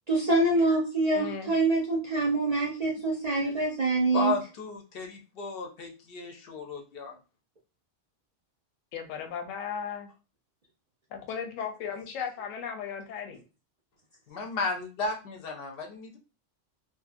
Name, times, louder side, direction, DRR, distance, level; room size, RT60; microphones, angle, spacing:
voice 1, 0.1-4.3, right 2 dB, 50° right, -3 dB, 0.5 m, -25 dB
voice 2, 1.1-1.5 8.9-10.1 11.1-13.4, left 7 dB, 90° left, 6 dB, 0.9 m, -36 dB
voice 3, 4.1-7.2 14.3-16.2, left 4 dB, 60° left, 2 dB, 0.6 m, -34 dB
2.6 x 2.5 x 2.4 m, 0.33 s
omnidirectional pair, 1.3 m